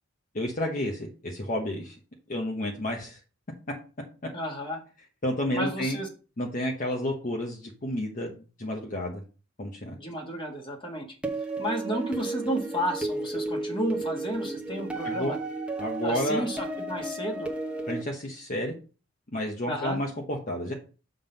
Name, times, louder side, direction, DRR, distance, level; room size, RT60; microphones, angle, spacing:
voice 1, 0.3-2.0 2.3-3.2 5.2-6.0 6.4-9.2 9.6-10.0 15.0-15.3 15.8-16.5 17.9-18.7 19.3-20.7, left 1 dB, 40° left, 0 dB, 1.1 m, -31 dB
voice 2, 4.3-4.8 5.5-6.1 10.0-11.1 11.6-15.4 16.0-17.5 19.7-20.0, equal, 25° left, 1 dB, 1.5 m, -32 dB
sound 1, 11.2-18.0, right 2 dB, 5° right, 0.9 m, -33 dB
7.4 x 3.9 x 5.2 m, 0.36 s
head